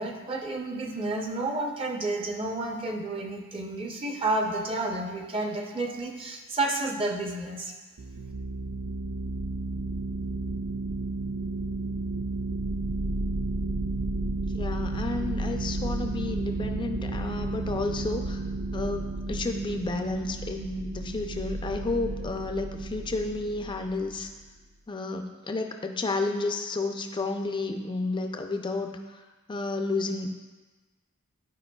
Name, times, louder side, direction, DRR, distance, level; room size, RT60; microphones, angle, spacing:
voice 1, 0.0-7.7, right 2 dB, 25° right, 2 dB, 0.6 m, -30 dB
sound 1, 8.0-24.2, right 2 dB, 90° right, 0.5 m, -32 dB
voice 2, 14.5-18.4 18.7-24.3 24.9-29.2 29.5-30.3, left 3 dB, 20° left, 5 dB, 0.4 m, -31 dB
11.0 x 5.0 x 2.3 m, 1.3 s
head